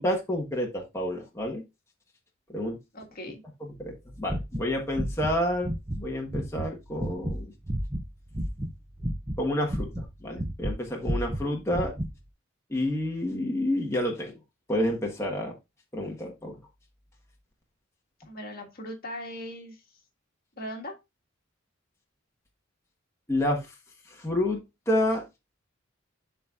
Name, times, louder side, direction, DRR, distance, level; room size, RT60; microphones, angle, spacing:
voice 1, 0.0-1.6 2.5-2.8 3.6-5.7 6.0-7.5 9.4-11.9 12.7-14.4 14.7-15.5 15.9-16.6 23.3-23.7 24.1-25.2, left 1 dB, 15° left, -1 dB, 1.3 m, -29 dB
voice 2, 2.9-3.4 18.2-19.8 20.6-20.9, equal, 50° left, 2 dB, 1.7 m, -39 dB
sound 1, 4.3-5.3 5.6-6.0 6.3-8.7 9.0-10.8 11.0-12.1, equal, 15° right, 0.8 m, -31 dB
11.5 x 4.1 x 2.4 m, 0.23 s
head